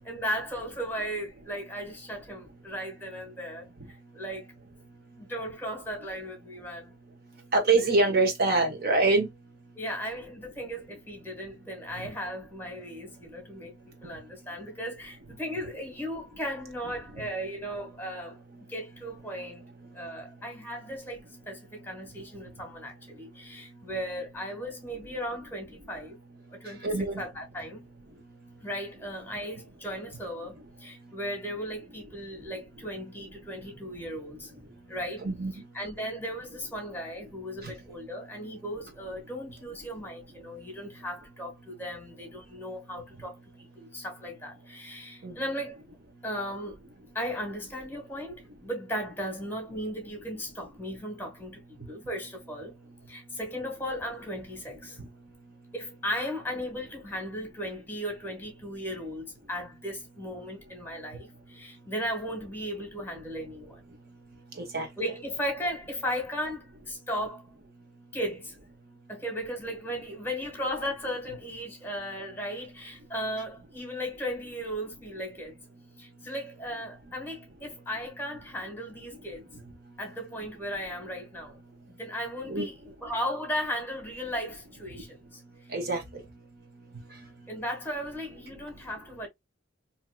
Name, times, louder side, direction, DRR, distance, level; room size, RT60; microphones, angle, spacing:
voice 1, 0.0-3.7 4.1-4.5 5.2-6.9 7.8-7.9 9.7-13.7 14.0-18.4 18.7-19.6 19.9-26.2 26.5-27.9 28.6-35.2 35.7-45.8 46.2-46.8 47.1-52.8 53.1-55.0 55.7-63.8 65.0-67.4 68.1-68.6 69.1-75.6 76.0-79.5 80.0-81.6 81.9-85.4 87.5-89.3, equal, 10° left, 1.3 m, -36 dB
voice 2, 7.5-9.3 12.0-12.1 26.8-27.2 35.2-35.5 37.6-37.7 45.2-45.3 55.0-55.1 64.6-64.9 82.5-82.7 85.7-86.0, right 3 dB, 55° right, 1.0 m, -25 dB
4.3 x 2.8 x 2.2 m
head